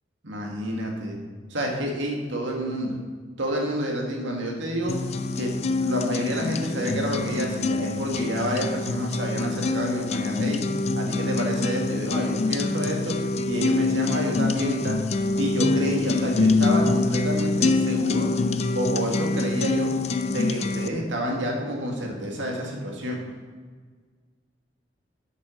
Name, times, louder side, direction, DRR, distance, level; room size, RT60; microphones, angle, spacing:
voice 1, 0.2-1.2 1.5-3.0 3.4-5.0 5.4-5.5 5.8-10.6 11.0-13.1 13.5-15.0 15.4-18.3 18.7-19.9 20.3-23.2, equal, 80° right, 0 dB, 2.0 m, -28 dB
sound 1, 4.9-20.9, left 3 dB, 35° left, 0.3 m, -25 dB
8.1 x 6.2 x 6.2 m, 1.5 s
head